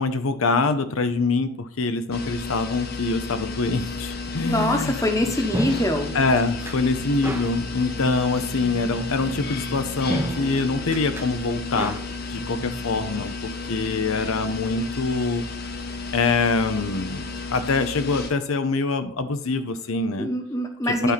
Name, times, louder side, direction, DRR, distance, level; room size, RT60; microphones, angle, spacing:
voice 1, 0.0-5.1 6.1-12.0 12.3-15.4 16.1-20.3 20.8-21.1, left 3 dB, 75° left, 10 dB, 0.7 m, -24 dB
sound 1, 2.1-18.3, left 3 dB, 45° left, 0.9 m, -33 dB
voice 2, 4.5-6.1 20.2-21.1, left 1 dB, 15° left, 4 dB, 1.0 m, -24 dB
sound 2, 5.2-13.3, right 1 dB, 10° right, 0.6 m, -34 dB
11.0 x 4.4 x 4.1 m, 0.62 s
head